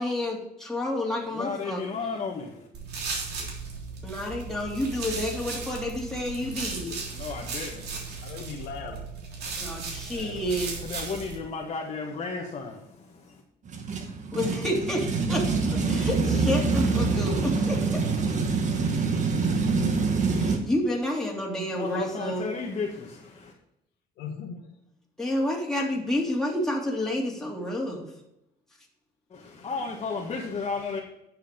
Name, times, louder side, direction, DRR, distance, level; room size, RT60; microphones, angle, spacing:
voice 1, 0.0-2.1 4.0-7.0 9.6-10.7 14.3-18.0 20.3-22.5 25.2-28.1, left 1 dB, 5° left, -3 dB, 3.1 m, -30 dB
voice 2, 1.3-2.7 7.1-8.2 10.4-13.4 21.7-23.5 29.3-31.0, left 4 dB, 35° left, -1 dB, 1.7 m, -34 dB
sound 1, 2.7-11.4, right 4 dB, 70° right, 3.4 m, -36 dB
voice 3, 8.2-9.4 9.7-9.8 10.1-10.5 24.2-24.6, left 6 dB, 85° left, 1 dB, 2.1 m, -40 dB
sound 2, 13.7-20.6, right 4 dB, 45° right, 1.8 m, -25 dB
10.5 x 6.8 x 5.2 m, 0.85 s
cardioid pair, 110°, 17 cm